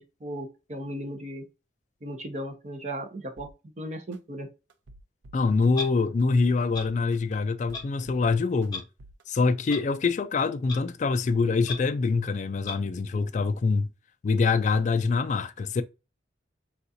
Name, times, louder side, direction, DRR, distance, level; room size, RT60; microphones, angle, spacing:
voice 1, 0.0-1.4 2.0-3.5 3.8-4.5, right 1 dB, 40° right, 0.7 m, -36 dB
sound 1, 3.4-3.5 4.1-4.2 4.7-5.7 6.2-7.3 7.7-8.7 9.0-9.2, right 1 dB, 85° right, 0.5 m, -50 dB
voice 2, 5.3-8.8 9.3-13.9 14.2-15.8, left 4 dB, 40° left, 0.3 m, -25 dB
Clock, 5.7-5.9 6.7-6.9 7.7-7.8 8.7-8.8 9.7-9.8 10.7-10.8 11.7-11.8 12.7-12.8, left 4 dB, 25° left, 0.8 m, -34 dB
3.9 x 2.3 x 2.6 m
head